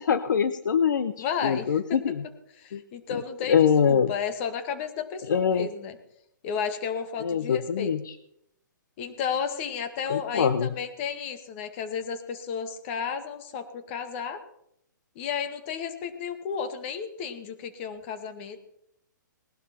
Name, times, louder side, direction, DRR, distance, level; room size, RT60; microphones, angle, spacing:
voice 1, 0.0-2.2 2.7-2.8 3.5-4.1 5.3-5.7 7.2-8.1 10.1-10.7, left 7 dB, 70° left, 13 dB, 0.8 m, -24 dB
voice 2, 1.2-2.1 2.6-6.0 6.4-7.9 9.0-14.4 15.2-18.6, left 6 dB, 35° left, 9 dB, 1.9 m, -33 dB
19.5 x 12.0 x 4.3 m, 0.75 s
hypercardioid pair, 140°, 11 cm